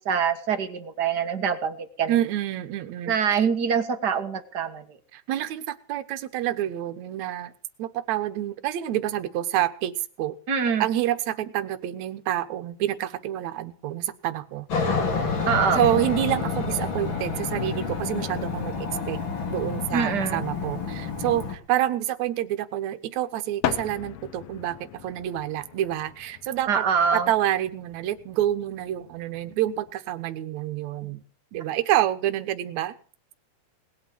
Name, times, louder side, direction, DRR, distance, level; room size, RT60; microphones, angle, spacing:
voice 1, 0.0-2.2 3.1-4.8 10.5-10.8 15.5-15.8 19.9-20.4 26.7-27.3, right 6 dB, 45° right, 8 dB, 1.4 m, -24 dB
voice 2, 2.1-3.5 5.1-7.5 7.8-9.9 10.2-10.3 10.8-14.7 15.7-19.2 19.5-26.9 27.1-31.2 31.5-32.9, right 12 dB, 70° right, 10 dB, 2.4 m, -28 dB
sound 1, 12.6-13.3 13.6-14.0 15.1-15.2 15.3-15.4 15.9-16.0 17.0-17.1 17.3-17.4 18.1-18.2 18.4-18.5 18.7-18.8 20.0-20.7 23.6-29.9, left 12 dB, 70° left, 1.8 m, -38 dB
Aircraft, 14.7-21.5, left 5 dB, 40° left, 2.9 m, -29 dB
19.5 x 8.8 x 7.7 m, 0.42 s
omnidirectional pair, 3.6 m